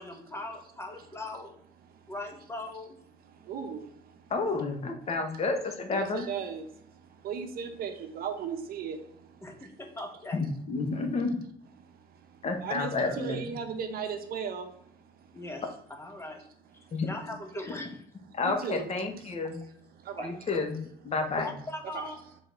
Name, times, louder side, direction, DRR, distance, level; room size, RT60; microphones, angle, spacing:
voice 1, 0.0-1.5 2.1-3.0 4.4-4.6 9.4-10.4 15.3-15.6 16.0-16.4 17.0-18.0 20.2-20.3 21.4-22.2, left 1 dB, 15° left, 4 dB, 1.2 m, -39 dB
voice 2, 3.5-3.8 5.9-6.6 7.2-9.0 12.6-14.7 18.4-18.9 20.2-20.3 21.9-22.1, right 6 dB, 65° right, 6 dB, 1.0 m, -35 dB
voice 3, 4.3-6.2 10.3-11.3 12.4-13.4 16.9-17.1 18.3-19.6 20.2-21.5, left 3 dB, 40° left, 5 dB, 1.2 m, -30 dB
6.1 x 4.0 x 3.9 m, 0.68 s
cardioid pair, 110°, 17 cm